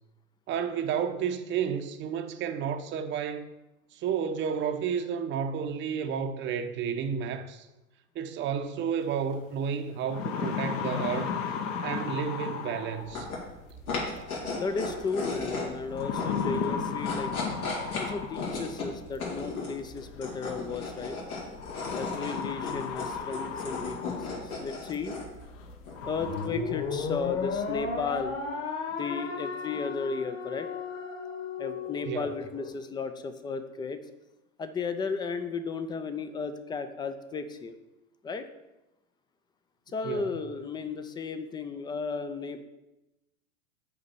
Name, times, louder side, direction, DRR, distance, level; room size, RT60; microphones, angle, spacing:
voice 1, 0.5-3.5 3.9-7.7 8.1-11.3 11.8-13.3 32.0-32.3 40.0-40.3, right 7 dB, 25° right, 0.7 m, -31 dB
sound 1, 9.3-9.4 9.9-13.3 14.7-15.1 15.9-18.7 20.0-20.1 21.6-24.5 24.9-25.0 25.6-25.7 25.9-26.5, left 6 dB, 60° left, 1.1 m, -34 dB
sound 2, 13.0-28.4, left 3 dB, 85° left, 2.9 m, -37 dB
voice 2, 14.6-17.3 17.9-21.2 22.0-25.1 26.0-28.4 29.0-30.7 31.6-34.0 34.6-37.8 38.2-38.4 39.9-42.6, left 4 dB, 10° left, 0.3 m, -34 dB
sound 3, 26.2-32.7, left 5 dB, 30° left, 1.4 m, -34 dB
6.7 x 5.0 x 7.0 m
hypercardioid pair, 100°, 42 cm